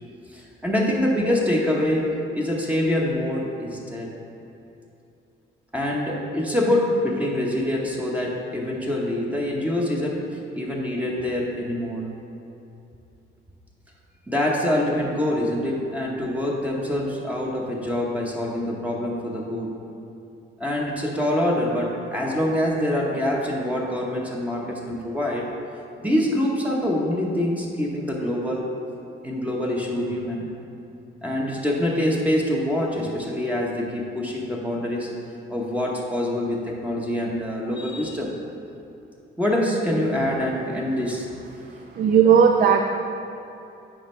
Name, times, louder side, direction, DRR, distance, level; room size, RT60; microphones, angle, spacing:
voice 1, 0.3-4.1 5.7-10.3 10.5-12.0 14.3-19.7 20.6-25.5 26.0-28.7 29.2-30.5 31.2-35.1 35.5-38.4 39.4-41.3, left 1 dB, 5° right, -3 dB, 1.0 m, -25 dB
voice 2, 41.9-42.8, right 7 dB, 50° right, 4 dB, 0.4 m, -15 dB
8.7 x 5.1 x 3.3 m, 2.8 s
cardioid pair, 90°, 20 cm